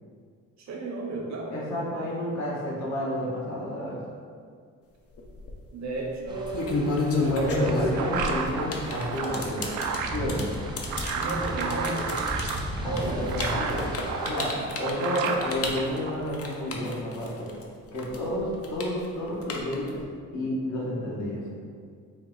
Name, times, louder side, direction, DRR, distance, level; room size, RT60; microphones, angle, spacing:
voice 1, 0.6-1.5 5.7-6.9 7.4-8.2 11.1-12.3 12.8-13.3, right 2 dB, 65° right, 0 dB, 0.8 m, -33 dB
voice 2, 1.5-4.0 7.3-9.8 10.0-10.5 12.8-13.8 14.2-14.5 14.8-17.5 17.9-20.0 20.3-21.4, left 1 dB, 65° left, -6 dB, 1.4 m, -30 dB
sound 1, 5.2-5.5 6.3-17.6 18.0-20.0, left 3 dB, 50° left, 0.6 m, -31 dB
sound 2, 6.3-14.5, right 1 dB, 15° right, 0.5 m, -37 dB
sound 3, 7.1-16.4, right 5 dB, 80° right, 0.5 m, -33 dB
4.3 x 2.4 x 3.9 m, 2.1 s
cardioid pair, 90°, 30 cm